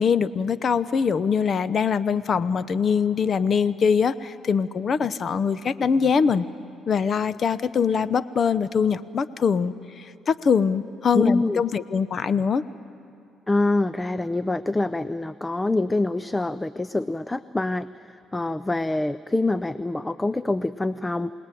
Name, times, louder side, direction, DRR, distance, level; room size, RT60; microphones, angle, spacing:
voice 1, 0.0-6.4 6.9-12.6, left 6 dB, 50° left, 16 dB, 0.8 m, -23 dB
voice 2, 11.1-11.6 13.5-21.3, left 2 dB, 15° left, 15 dB, 0.5 m, -25 dB
27.5 x 19.0 x 9.2 m, 2.6 s
cardioid pair, 80°, 0 cm